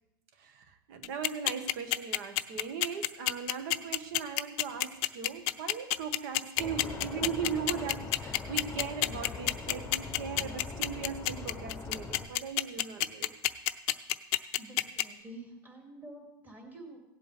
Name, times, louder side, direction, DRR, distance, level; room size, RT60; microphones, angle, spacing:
voice 1, 0.4-13.3, right 7 dB, 60° right, 8 dB, 1.5 m, -38 dB
sound 1, 1.0-15.0, left 18 dB, 50° left, 0.5 m, -28 dB
sound 2, 6.6-12.2, left 4 dB, 15° left, 0.9 m, -42 dB
voice 2, 14.6-17.0, right 1 dB, 15° right, 0 dB, 2.7 m, -48 dB
17.5 x 7.9 x 3.4 m, 0.95 s
supercardioid pair, 145°, 12 cm